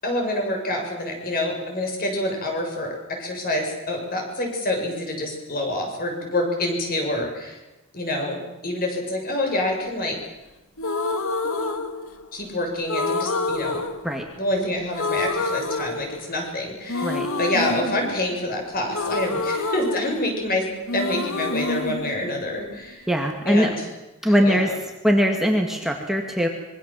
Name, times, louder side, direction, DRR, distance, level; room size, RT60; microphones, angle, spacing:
voice 1, 0.0-7.6 7.9-10.2 12.3-13.8 14.4-17.1 17.4-23.0 23.5-23.7 24.2-24.6, left 1 dB, 45° left, 2 dB, 7.3 m, -27 dB
sound 1, 10.8-12.4 12.9-14.6 14.9-16.5 16.9-20.6 20.9-22.9, left 3 dB, 70° left, 2.1 m, -28 dB
voice 2, 23.1-23.7 24.2-24.7 25.0-26.5, equal, ahead, 2 dB, 2.2 m, -21 dB
26.0 x 23.5 x 7.7 m, 1.0 s
head